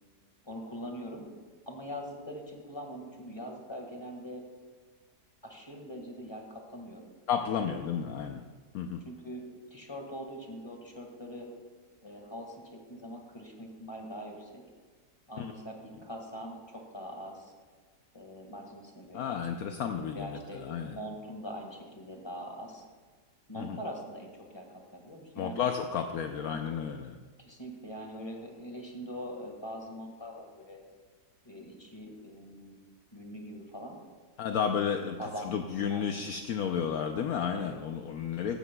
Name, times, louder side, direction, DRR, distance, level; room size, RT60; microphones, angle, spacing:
voice 1, 0.4-1.3 1.6-4.4 5.4-7.1 7.3-8.0 9.0-9.4 9.7-11.5 12.0-14.6 15.3-17.5 18.1-19.4 20.1-22.8 23.5-25.7 26.3-26.6 27.4-30.8 31.4-32.8 33.1-34.0 34.6-35.5 35.9-36.3 37.5-37.8, equal, 15° left, 1 dB, 1.7 m, -43 dB
voice 2, 7.3-8.5 8.7-9.0 15.4-15.5 19.1-21.0 23.6-23.8 25.4-27.2 34.4-38.6, left 7 dB, 70° left, 5 dB, 1.0 m, -32 dB
15.5 x 13.5 x 2.3 m, 1.5 s
omnidirectional pair, 1.8 m